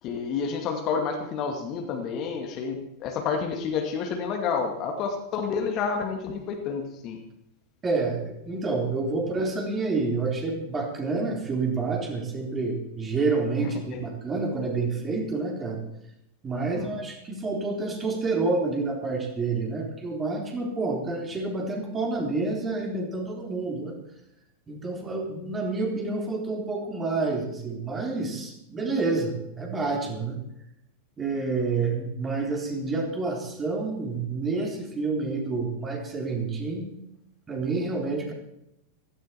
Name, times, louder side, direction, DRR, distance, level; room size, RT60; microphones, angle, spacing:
voice 1, 0.0-7.2 13.6-14.0 16.5-17.0, left 5 dB, 35° left, 4 dB, 2.2 m, -30 dB
voice 2, 7.8-15.8 16.4-24.0 24.7-30.4 31.2-36.9 37.5-38.3, right 3 dB, 20° right, 1 dB, 3.6 m, -28 dB
16.0 x 14.0 x 4.3 m, 0.81 s
figure-of-eight pair, 90°, 0 cm